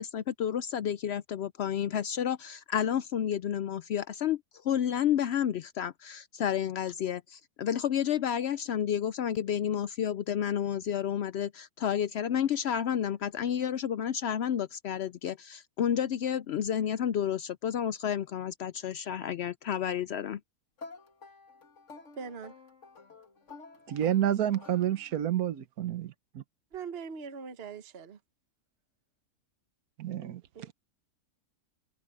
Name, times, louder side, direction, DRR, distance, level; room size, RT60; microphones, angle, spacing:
voice 1, 0.0-4.4 4.6-20.4, left 9 dB, 70° left, 0.6 m, -30 dB
sound 1, 20.8-25.4, left 4 dB, 50° left, 2.1 m, -51 dB
voice 2, 22.2-22.5 26.7-28.2 30.5-30.7, right 6 dB, 45° right, 1.3 m, -41 dB
voice 3, 23.9-26.4 30.0-30.4, right 11 dB, 75° right, 1.5 m, -29 dB
omnidirectional pair, 1.6 m